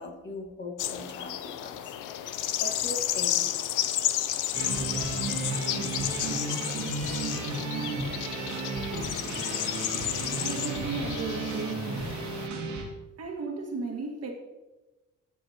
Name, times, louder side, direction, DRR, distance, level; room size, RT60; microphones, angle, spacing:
voice 1, 0.0-3.4, left 2 dB, 40° left, 2 dB, 1.6 m, -40 dB
sound 1, 0.8-12.5, left 12 dB, 85° left, 0.6 m, -32 dB
sound 2, 4.5-12.8, right 3 dB, 80° right, 1.9 m, -33 dB
voice 2, 10.4-11.8 13.2-14.3, right 4 dB, 55° right, 2 dB, 1.8 m, -35 dB
12.0 x 7.5 x 2.9 m, 1.1 s
cardioid pair, 90°, 30 cm